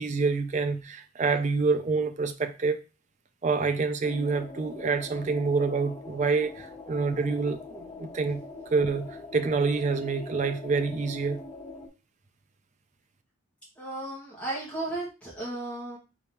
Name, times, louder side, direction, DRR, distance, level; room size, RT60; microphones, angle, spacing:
voice 1, 0.0-2.8 3.4-8.4 8.7-11.4, right 4 dB, 35° right, 0.4 m, -27 dB
sound 1, 4.0-11.9, left 3 dB, 25° left, 0.6 m, -43 dB
voice 2, 13.8-16.0, right 2 dB, 5° left, 1.6 m, -34 dB
3.9 x 3.5 x 2.9 m
head